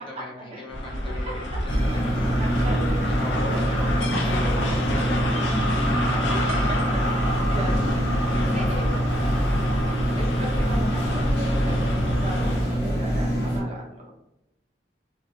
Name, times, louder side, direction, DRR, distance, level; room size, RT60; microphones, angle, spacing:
voice 1, 0.0-2.6 3.0-5.8, left 1 dB, 30° left, -1 dB, 0.5 m, -39 dB
sound 1, 0.7-12.8, left 1 dB, 85° left, 0.4 m, -28 dB
sound 2, 1.7-13.6, equal, 65° left, 0.9 m, -24 dB
voice 2, 2.4-3.0 4.2-4.5 4.8-4.9 6.1-6.6 6.9-7.0 7.5-8.1 8.5-8.9 10.1-14.0, right 1 dB, 35° right, -3 dB, 0.6 m, -37 dB
2.3 x 2.0 x 2.9 m, 0.90 s
head